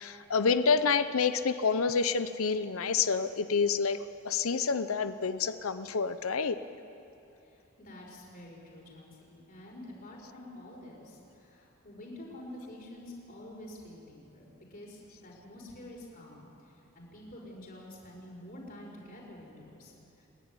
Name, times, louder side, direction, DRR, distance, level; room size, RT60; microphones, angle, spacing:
voice 1, 0.0-4.0 4.2-6.6, left 5 dB, 90° left, 12 dB, 0.7 m, -28 dB
voice 2, 7.4-20.3, left 1 dB, 45° left, -3 dB, 5.8 m, -48 dB
28.0 x 11.0 x 9.8 m, 2.8 s
head